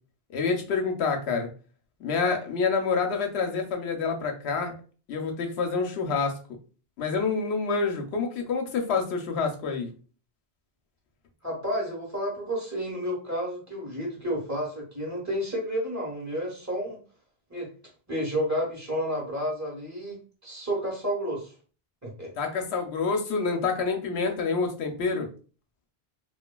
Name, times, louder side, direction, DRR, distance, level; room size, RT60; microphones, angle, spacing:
voice 1, 0.3-1.5 2.0-4.7 5.1-6.4 7.0-9.9 22.4-25.3, left 4 dB, 80° left, 3 dB, 0.9 m, -27 dB
voice 2, 11.4-17.0 17.5-17.7 18.1-21.5 22.0-22.3, equal, 15° right, -3 dB, 1.1 m, -31 dB
3.1 x 2.4 x 2.2 m, 0.38 s
omnidirectional pair, 1.1 m